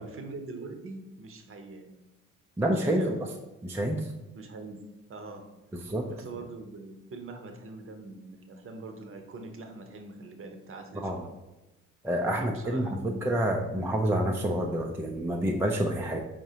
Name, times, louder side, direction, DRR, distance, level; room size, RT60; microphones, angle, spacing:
voice 1, 0.0-2.1 2.8-3.2 4.3-4.8 5.1-5.5 6.1-11.2 12.3-13.2, right 3 dB, 35° right, 5 dB, 0.8 m, -43 dB
voice 2, 2.6-3.3 3.6-4.1 5.8-6.1 11.0-11.2 12.0-16.2, right 1 dB, 5° right, 1 dB, 0.4 m, -28 dB
4.7 x 3.7 x 2.7 m, 1.0 s
figure-of-eight pair, 50°, 39 cm